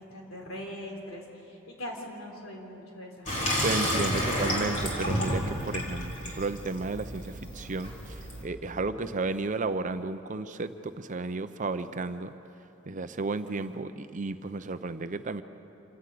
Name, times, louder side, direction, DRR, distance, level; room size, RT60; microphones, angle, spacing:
voice 1, 0.1-3.6 4.0-4.5, left 1 dB, 75° left, 0 dB, 3.9 m, -42 dB
Water tap faucet / Sink (filling or washing), 3.3-8.4, equal, 35° left, 3.6 m, -31 dB
voice 2, 3.6-7.9 8.4-10.7 11.0-12.3 12.9-15.4, right 3 dB, 35° right, 10 dB, 0.6 m, -33 dB
27.5 x 12.0 x 8.5 m, 3.0 s
head